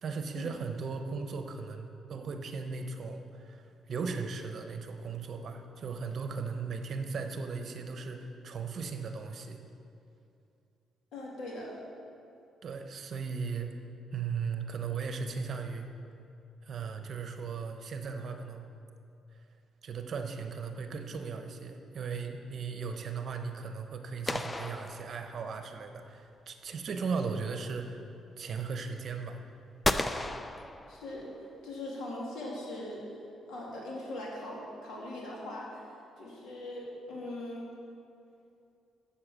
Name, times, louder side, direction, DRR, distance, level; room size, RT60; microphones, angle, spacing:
voice 1, 0.0-9.6 12.6-13.7 14.1-15.9 16.6-18.6 19.8-28.0 28.4-29.4, right 5 dB, 55° right, 6 dB, 0.9 m, -37 dB
voice 2, 11.1-11.8 30.9-31.3 31.6-33.0 33.5-35.9 36.2-37.7, left 1 dB, 75° left, -4 dB, 2.6 m, -40 dB
sound 1, 24.3-25.7 29.8-31.4, left 2 dB, 15° left, 0.4 m, -34 dB
7.8 x 7.1 x 7.4 m, 2.6 s
cardioid pair, 90°, 0 cm